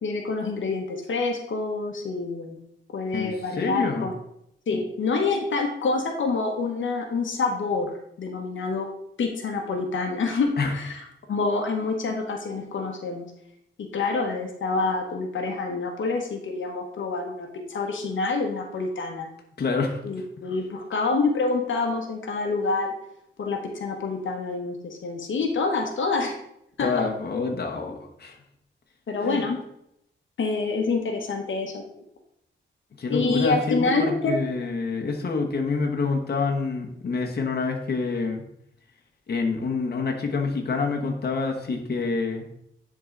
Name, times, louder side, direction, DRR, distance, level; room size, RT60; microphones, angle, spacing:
voice 1, 0.0-2.6 2.9-4.1 4.7-7.9 8.2-8.9 9.2-11.0 11.3-13.3 13.8-19.3 20.0-22.9 23.4-26.3 26.8-27.0 29.1-29.6 30.4-31.8 33.1-34.3, left 3 dB, 75° left, 3 dB, 1.1 m, -27 dB
voice 2, 3.1-4.1 10.6-10.7 19.6-20.0 26.8-28.4 29.2-29.4 33.0-38.4 39.3-42.4, left 4 dB, 55° left, 2 dB, 1.1 m, -27 dB
10.5 x 3.9 x 3.8 m, 0.75 s
wide cardioid pair, 100°, 20 cm